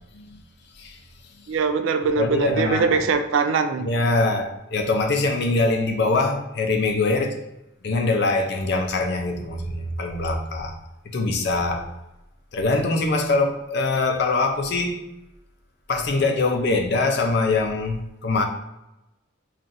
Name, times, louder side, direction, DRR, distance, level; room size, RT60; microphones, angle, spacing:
voice 1, 1.5-3.9, right 5 dB, 65° right, 0.3 m, -22 dB
voice 2, 2.2-3.0 3.8-7.4 7.8-10.8 11.0-11.9 12.5-15.0 15.9-18.4, left 3 dB, 50° left, 0.5 m, -23 dB
5.5 x 2.4 x 2.5 m
head